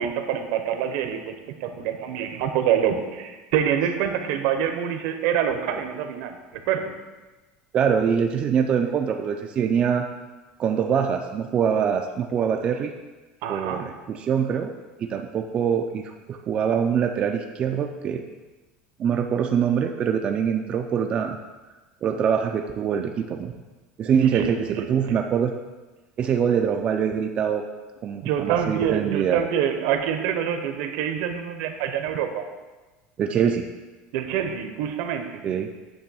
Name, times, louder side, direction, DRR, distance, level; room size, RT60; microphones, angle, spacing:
voice 1, 0.0-6.9 13.4-13.9 24.3-25.2 28.2-32.5 34.1-35.5, right 9 dB, 70° right, 6 dB, 0.9 m, -26 dB
voice 2, 7.7-10.1 10.6-12.9 13.5-14.7 15.0-18.2 19.0-21.4 22.0-23.5 24.0-25.5 26.2-27.6 28.0-29.4 33.2-33.7 35.4-35.7, right 7 dB, 30° right, 3 dB, 0.4 m, -24 dB
8.7 x 3.1 x 6.2 m, 1.2 s
cardioid pair, 160°, 4 cm